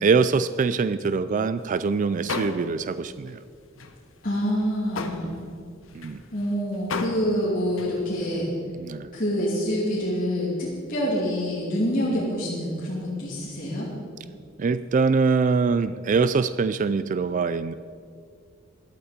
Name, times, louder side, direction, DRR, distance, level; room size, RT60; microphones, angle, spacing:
voice 1, 0.0-3.4 5.9-6.2 8.8-9.1 12.1-12.3 14.6-17.7, right 4 dB, 40° right, 14 dB, 0.3 m, -23 dB
sound 1, 1.6-1.8 2.2-3.0 3.3-3.4 3.8-8.4, left 3 dB, 85° left, 1.1 m, -35 dB
voice 2, 4.2-5.3 6.3-8.5 9.1-13.9, equal, 45° left, -7 dB, 2.6 m, -26 dB
16.5 x 11.5 x 5.0 m, 2.2 s
head